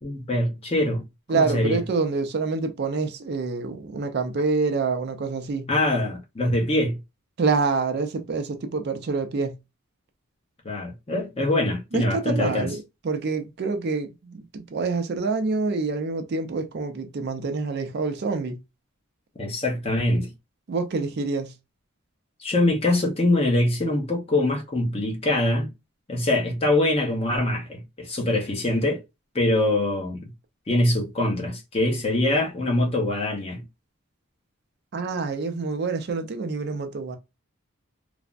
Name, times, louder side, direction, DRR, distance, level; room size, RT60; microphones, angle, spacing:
voice 1, 0.0-1.8 5.7-7.0 10.6-12.7 19.4-20.3 22.4-25.7 26.1-29.0 29.3-30.2 30.7-33.6, left 1 dB, 25° left, 0.7 m, -23 dB
voice 2, 1.3-5.7 7.4-9.6 11.9-18.6 20.7-21.6 34.9-37.2, right 4 dB, 50° right, 0.4 m, -27 dB
3.2 x 2.0 x 2.5 m
head